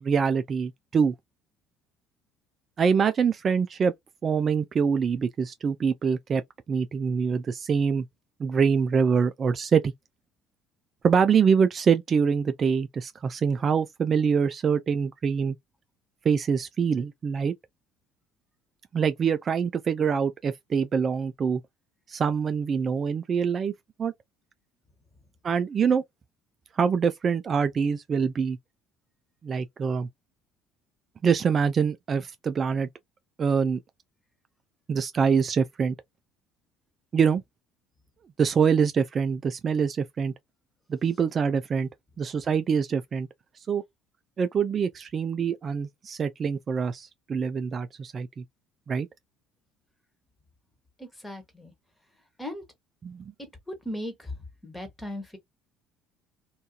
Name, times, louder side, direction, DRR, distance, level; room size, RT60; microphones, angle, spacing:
voice 1, 0.0-1.1 2.8-3.9 4.2-6.4 6.7-8.1 8.4-9.9 11.0-15.6 16.2-17.5 18.9-21.6 22.1-23.7 24.0-24.1 25.4-26.0 26.7-28.6 29.4-30.1 31.2-32.9 33.4-33.8 34.9-36.0 37.1-37.4 38.4-40.3 40.9-41.9 42.2-43.3 43.7-43.8 44.4-48.4 48.9-49.1 53.0-53.3, right 6 dB, 40° right, 0.3 m, -25 dB
voice 2, 51.0-51.7 52.4-52.6 53.4-54.3 54.6-55.4, left 1 dB, 10° left, 1.3 m, -37 dB
2.6 x 2.3 x 2.3 m
supercardioid pair, 85°, 0 cm